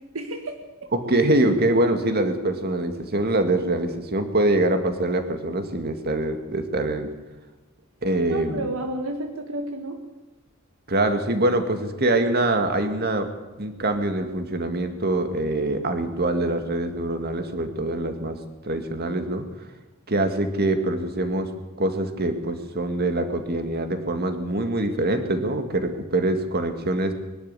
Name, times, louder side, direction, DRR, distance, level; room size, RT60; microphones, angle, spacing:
voice 1, 0.0-0.9 8.3-10.0, right 1 dB, 90° right, 4 dB, 1.8 m, -32 dB
voice 2, 0.9-7.1 8.0-8.7 10.9-13.3 13.6-18.4 18.6-19.5 20.1-21.5 21.8-27.1, right 1 dB, 50° right, 7 dB, 2.1 m, -24 dB
22.5 x 12.0 x 9.8 m, 1.1 s
head